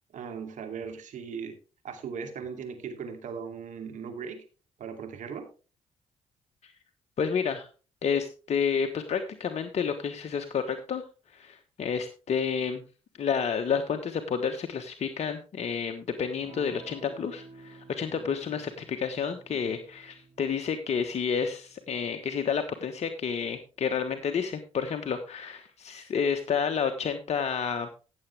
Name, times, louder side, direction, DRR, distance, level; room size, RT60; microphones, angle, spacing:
voice 1, 0.1-1.5 1.8-4.4 4.8-5.5 18.2-18.4, right 6 dB, 65° right, 5 dB, 2.7 m, -38 dB
voice 2, 7.2-7.7 8.0-11.0 11.3-12.8 13.2-27.9, left 6 dB, 55° left, 7 dB, 1.2 m, -30 dB
Electric guitar / Strum, 16.4-24.7, right 4 dB, 45° right, 3.5 m, -54 dB
15.5 x 7.2 x 3.4 m, 0.34 s
hypercardioid pair, 50°, 14 cm